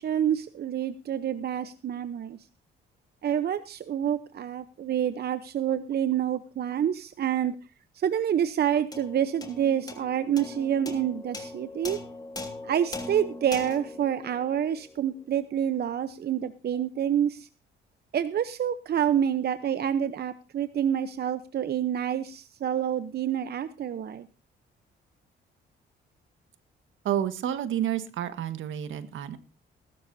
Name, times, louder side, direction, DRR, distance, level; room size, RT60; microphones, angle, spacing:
voice 1, 0.0-2.4 3.2-7.5 7.9-12.0 12.6-17.5 18.1-24.3, right 9 dB, 55° right, 12 dB, 0.8 m, -28 dB
sound 1, 8.9-15.5, left 2 dB, 20° left, 2.9 m, -41 dB
voice 2, 27.0-29.4, right 10 dB, 75° right, 11 dB, 1.6 m, -30 dB
20.0 x 12.5 x 2.7 m, 0.33 s
cardioid pair, 90°, 20 cm